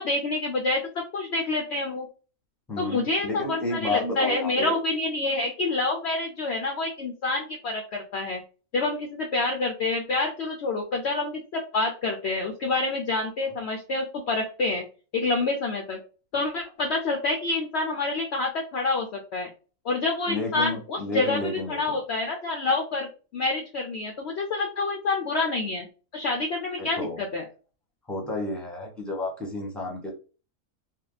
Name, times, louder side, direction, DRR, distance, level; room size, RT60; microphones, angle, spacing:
voice 1, 0.0-2.1 2.8-8.4 8.7-14.8 15.1-16.0 16.3-19.5 19.8-21.4 21.7-25.9 26.1-27.4, left 3 dB, 60° left, 2 dB, 0.7 m, -27 dB
voice 2, 2.7-4.7 20.3-22.0 26.8-27.2 28.1-30.1, left 2 dB, ahead, -1 dB, 1.0 m, -31 dB
3.6 x 2.2 x 3.9 m, 0.36 s
omnidirectional pair, 1.5 m